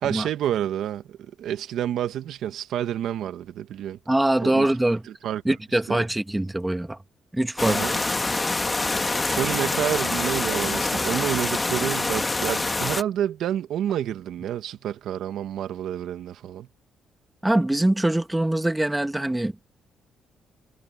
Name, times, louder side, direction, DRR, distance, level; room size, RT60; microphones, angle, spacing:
voice 1, 0.0-4.0 4.4-4.7 5.2-5.4 5.7-6.0 7.7-8.0 9.3-16.7, right 11 dB, 75° right, 1.6 m, -29 dB
voice 2, 4.1-5.0 5.4-7.0 7.3-7.8 17.4-19.5, right 1 dB, 10° right, 1.3 m, -23 dB
sound 1, 7.6-13.0, left 3 dB, 20° left, 1.5 m, -25 dB
cardioid pair, 90°, 0 cm